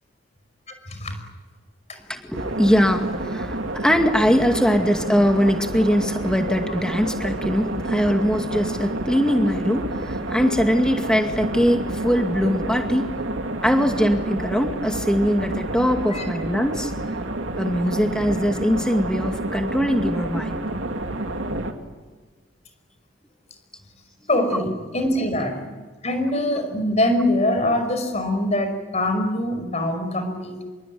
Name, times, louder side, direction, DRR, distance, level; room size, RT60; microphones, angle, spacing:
voice 1, 2.2-13.1 13.6-16.9 17.6-20.6 24.5-24.6, equal, 5° left, 4 dB, 2.2 m, -21 dB
sound 1, 2.3-21.7, right 1 dB, 75° right, 2.7 m, -29 dB
voice 2, 24.3-25.7 26.0-30.6, left 1 dB, 35° left, 7 dB, 5.4 m, -23 dB
26.5 x 23.0 x 9.5 m, 1.3 s
head